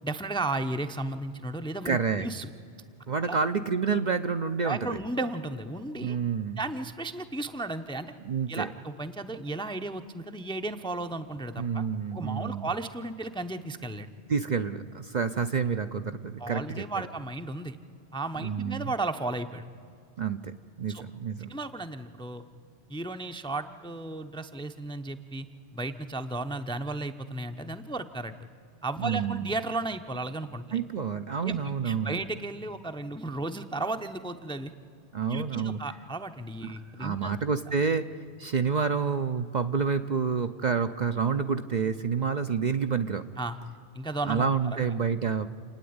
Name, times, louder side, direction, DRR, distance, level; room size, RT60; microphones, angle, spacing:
voice 1, 0.0-2.5 3.2-3.4 4.6-6.2 6.6-8.1 8.5-11.8 12.1-14.1 16.4-17.8 18.1-19.6 20.9-21.0 21.5-22.4 22.9-25.5 25.7-28.3 28.8-30.8 31.4-34.7 35.3-37.3 43.4-43.6 43.9-44.5 44.8-44.9, right 2 dB, 5° left, 8 dB, 0.6 m, -34 dB
voice 2, 1.8-2.3 3.1-5.0 6.0-6.6 8.2-8.7 11.6-12.7 14.3-16.9 18.4-18.9 20.2-20.4 20.8-21.5 29.0-29.5 30.7-32.2 35.1-35.8 36.6-43.2 44.2-45.5, right 6 dB, 50° right, 8 dB, 0.7 m, -28 dB
28.5 x 9.6 x 9.5 m, 2.4 s
omnidirectional pair, 1.1 m